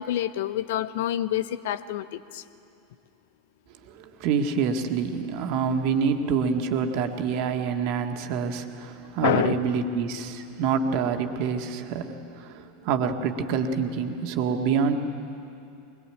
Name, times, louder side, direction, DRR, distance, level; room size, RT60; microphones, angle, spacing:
voice 1, 0.0-2.4 9.2-9.5, left 12 dB, 55° left, 15 dB, 0.7 m, -27 dB
voice 2, 3.8-15.0, right 6 dB, 50° right, 4 dB, 1.9 m, -27 dB
23.5 x 21.5 x 9.0 m, 2.6 s
figure-of-eight pair, 80°, 0 cm